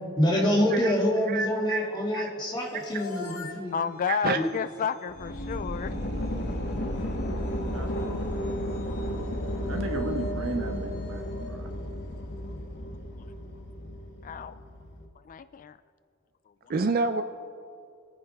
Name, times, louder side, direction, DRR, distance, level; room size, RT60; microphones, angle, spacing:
voice 1, 0.2-3.7 4.3-4.5, equal, 20° left, -3 dB, 2.4 m, -26 dB
voice 2, 1.3-1.9 2.1-2.3 2.7-2.8 4.1-4.4 16.7-17.2, right 4 dB, 45° right, 8 dB, 0.5 m, -28 dB
sound 1, 2.4-12.6, equal, 80° left, 2.0 m, -44 dB
voice 3, 3.7-6.1 14.2-14.6 15.3-15.8, left 7 dB, 40° left, 13 dB, 0.3 m, -31 dB
sound 2, 5.1-15.1, left 1 dB, 55° left, 1.5 m, -33 dB
voice 4, 6.5-7.2 7.7-8.9 9.7-11.7, right 1 dB, 70° right, 4 dB, 1.4 m, -37 dB
27.0 x 9.5 x 3.5 m, 2.4 s
head